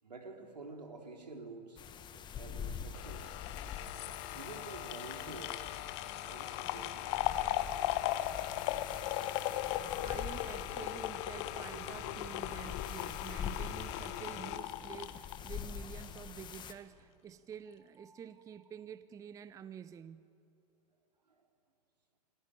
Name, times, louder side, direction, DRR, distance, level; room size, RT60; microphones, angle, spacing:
voice 1, 0.0-1.8 2.3-3.4 3.7-3.8 4.3-5.7 6.3-7.1 7.8-8.0 18.0-18.4 21.3-21.5, right 3 dB, 80° right, 3 dB, 3.7 m, -49 dB
sound 1, 1.8-16.7, left 7 dB, 20° left, 1.4 m, -45 dB
sound 2, 2.9-16.2 16.5-16.6, left 14 dB, 40° left, 1.3 m, -38 dB
sound 3, 9.1-16.6, right 5 dB, 35° right, 5.4 m, -59 dB
voice 2, 10.0-20.2, right 8 dB, 15° right, 14 dB, 0.7 m, -49 dB
28.5 x 21.0 x 9.0 m, 2.8 s
figure-of-eight pair, 105°, 21 cm